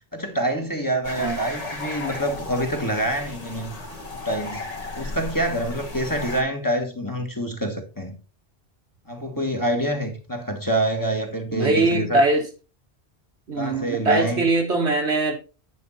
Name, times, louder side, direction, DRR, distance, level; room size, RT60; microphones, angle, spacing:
voice 1, 0.1-3.8 4.2-4.6 4.9-8.2 9.1-12.2 13.6-14.4, right 1 dB, 20° left, 1.6 m, -26 dB
sound 1, 1.0-6.4, left 2 dB, 35° left, 1.6 m, -35 dB
voice 2, 11.5-12.4 13.5-15.3, right 2 dB, 85° right, 2.1 m, -21 dB
9.7 x 5.3 x 4.2 m
omnidirectional pair, 1.1 m